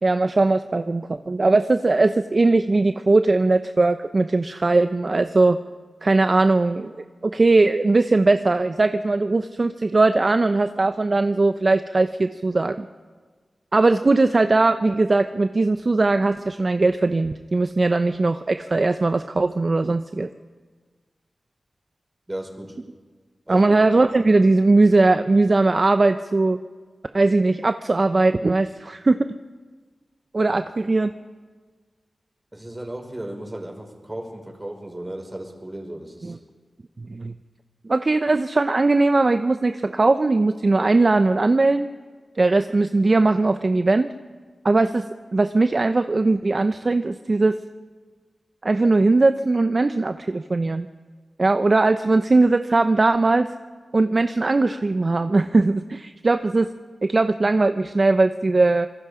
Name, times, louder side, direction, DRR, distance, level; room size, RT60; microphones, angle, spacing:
voice 1, 0.0-5.6 6.0-6.9 7.2-12.8 13.7-20.3 23.5-26.6 27.1-29.2 30.3-31.1 36.2-36.4 37.0-37.3 37.8-41.9 42.4-44.1 44.6-45.0 45.3-47.6 48.6-50.9 51.4-53.5 53.9-56.7 57.0-58.9, right 3 dB, 45° right, 9 dB, 0.7 m, -19 dB
voice 2, 22.3-22.7 23.5-23.7 32.5-36.4, right 1 dB, 25° right, 2 dB, 5.2 m, -35 dB
26.0 x 21.5 x 5.0 m, 1.5 s
cardioid pair, 50°, 0 cm